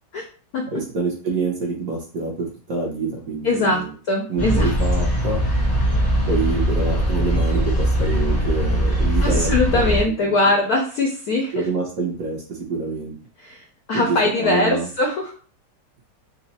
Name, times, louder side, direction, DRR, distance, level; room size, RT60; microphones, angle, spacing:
voice 1, 0.7-3.9 4.3-5.4 6.3-9.9 10.2-10.4 11.5-13.1 13.9-14.9, right 3 dB, 55° right, -2 dB, 1.0 m, -26 dB
voice 2, 3.4-4.7 9.2-11.6 13.4-15.3, left 2 dB, 70° left, 1 dB, 0.9 m, -21 dB
sound 1, 4.4-10.0, equal, 15° left, 0.6 m, -20 dB
3.9 x 2.1 x 4.1 m, 0.39 s
omnidirectional pair, 2.3 m